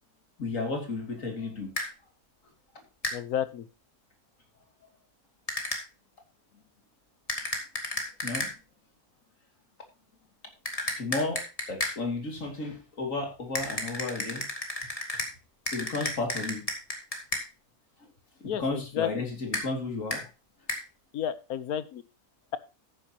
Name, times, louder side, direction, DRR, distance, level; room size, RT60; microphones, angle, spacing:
voice 1, 0.4-1.7 8.2-8.5 11.0-14.5 15.7-16.6 18.4-20.3, left 3 dB, 55° left, 3 dB, 3.2 m, -33 dB
sound 1, 1.8-1.9 3.0-3.2 5.5-5.8 7.3-8.5 10.7-12.0 13.5-15.3 15.7-17.4 19.5-19.7 20.1-20.2 20.7-20.8, left 1 dB, 20° left, 2.6 m, -32 dB
voice 2, 3.1-3.7 18.4-19.3 21.1-22.0, left 9 dB, 70° left, 14 dB, 1.3 m, -32 dB
13.5 x 10.0 x 2.9 m, 0.31 s
omnidirectional pair, 1.7 m